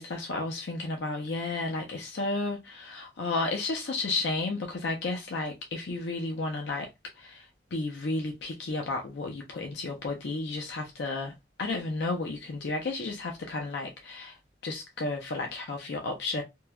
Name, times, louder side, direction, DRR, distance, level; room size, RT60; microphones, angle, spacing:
voice 1, 0.0-6.9 7.2-16.4, left 3 dB, 85° left, 0.5 m, -33 dB
3.0 x 2.2 x 2.3 m
head